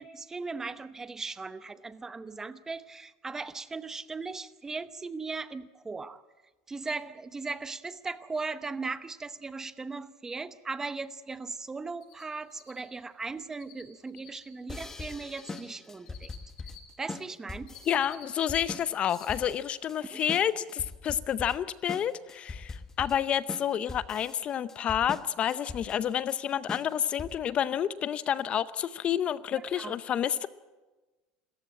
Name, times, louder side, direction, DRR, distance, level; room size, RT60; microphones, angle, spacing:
voice 1, 0.0-6.2 6.7-16.3 17.0-17.7 20.0-20.2 29.6-30.0, right 4 dB, 15° right, 13 dB, 0.8 m, -38 dB
Cricket, 12.0-12.2 12.5-16.8 17.3-18.7 19.0-19.3 19.7-19.8 22.3-22.4 22.8-22.9 23.1-23.2, left 13 dB, 65° left, 7.7 m, -51 dB
sound 1, 14.7-27.6, left 3 dB, 15° left, 1.0 m, -42 dB
voice 2, 17.9-30.5, left 9 dB, 35° left, 15 dB, 0.6 m, -29 dB
27.5 x 14.5 x 8.7 m, 1.2 s
supercardioid pair, 140°, 4 cm